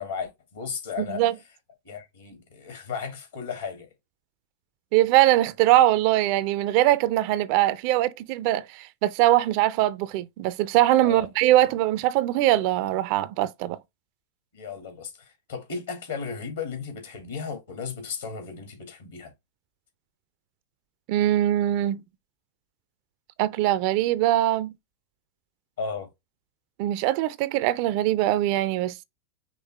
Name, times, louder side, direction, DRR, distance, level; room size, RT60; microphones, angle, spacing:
voice 1, 0.0-1.2 1.8-3.9 11.0-11.3 14.5-19.3 25.8-26.1, left 5 dB, 65° left, 2.2 m, -35 dB
voice 2, 1.0-1.3 4.9-13.8 21.1-22.0 23.4-24.7 26.8-29.0, right 14 dB, 45° right, 0.4 m, -22 dB
5.3 x 3.2 x 3.1 m
figure-of-eight pair, 90°, 0 cm